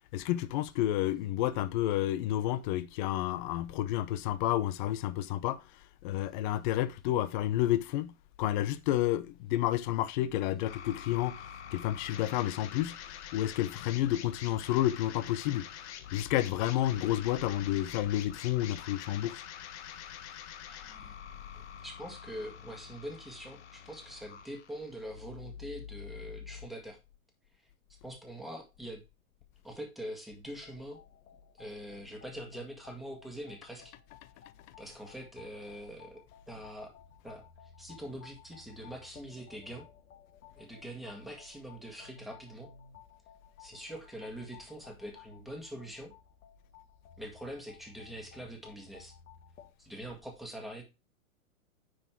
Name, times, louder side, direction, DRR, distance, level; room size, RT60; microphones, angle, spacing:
voice 1, 0.1-5.6 6.0-15.7 16.1-19.4, left 13 dB, 35° left, 0.6 m, -30 dB
sound 1, 10.7-26.7, left 9 dB, 50° left, 1.4 m, -46 dB
voice 2, 20.7-21.2 21.5-27.0 28.0-29.0 29.6-31.0 31.6-33.9 34.8-36.9 37.2-37.4 37.8-39.9 40.6-42.7 43.6-46.1 47.2-49.1 49.8-50.8, equal, ahead, 1.7 m, -44 dB
sound 2, 30.5-49.7, left 7 dB, 70° left, 2.2 m, -57 dB
9.8 x 4.1 x 4.6 m
hypercardioid pair, 140°, 43 cm